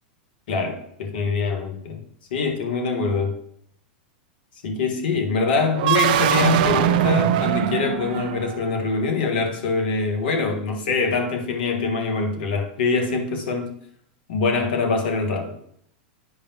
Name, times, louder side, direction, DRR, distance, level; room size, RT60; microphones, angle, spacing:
voice 1, 0.5-2.0 2.3-3.4 4.6-13.8 14.3-15.5, left 4 dB, 70° left, 3 dB, 1.6 m, -24 dB
sound 1, 5.7-8.7, right 12 dB, 60° right, 0.5 m, -21 dB
11.0 x 5.1 x 2.9 m, 0.70 s
hypercardioid pair, 105°, 5 cm